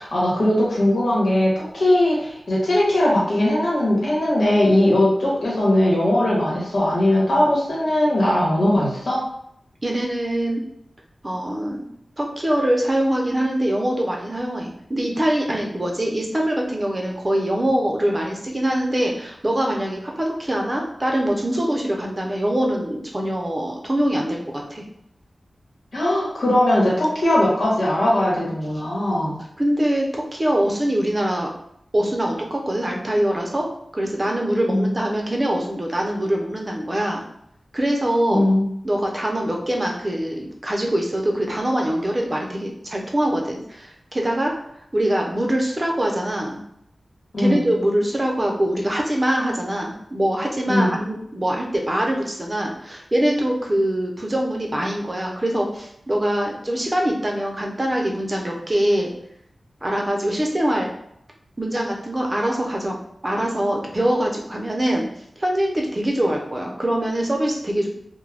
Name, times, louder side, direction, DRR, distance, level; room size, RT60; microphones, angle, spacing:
voice 1, 0.0-9.2 25.9-29.4 34.7-34.9 38.3-38.7 47.3-47.6 50.7-50.9, left 1 dB, 75° left, -6 dB, 1.1 m, -19 dB
voice 2, 9.8-10.6 11.2-11.8 12.2-24.8 29.1-29.3 29.6-31.5 31.9-33.7 33.9-37.2 37.7-38.4 38.8-44.5 44.9-46.6 47.4-59.1 59.8-60.9 61.6-63.0 63.2-65.1 65.4-67.9, right 1 dB, 30° right, 0 dB, 0.6 m, -23 dB
2.3 x 2.1 x 3.3 m, 0.73 s
wide cardioid pair, 60°, 0 cm